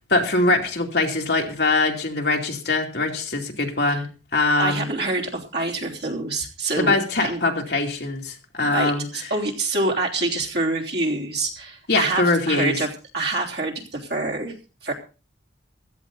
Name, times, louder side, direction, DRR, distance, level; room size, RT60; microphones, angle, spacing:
voice 1, 0.1-4.1 4.3-4.8 6.8-9.1 11.9-12.8, left 2 dB, 55° left, 1 dB, 2.7 m, -22 dB
voice 2, 4.6-6.9 7.2-7.4 8.7-12.9 13.1-14.5 14.8-14.9, right 2 dB, 55° right, -1 dB, 3.3 m, -26 dB
16.0 x 13.5 x 3.9 m, 0.32 s
head